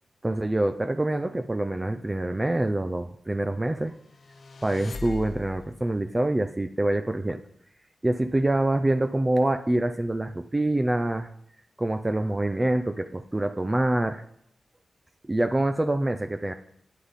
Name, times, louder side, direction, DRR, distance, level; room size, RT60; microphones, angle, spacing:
voice 1, 0.2-3.9 4.6-7.4 8.0-11.3 11.8-14.2 15.3-16.5, right 1 dB, 20° right, 7 dB, 0.6 m, -25 dB
sound 1, 4.1-5.8, left 4 dB, 60° left, 0.8 m, -40 dB
11.5 x 9.7 x 4.2 m, 0.67 s
wide cardioid pair, 95°, 0 cm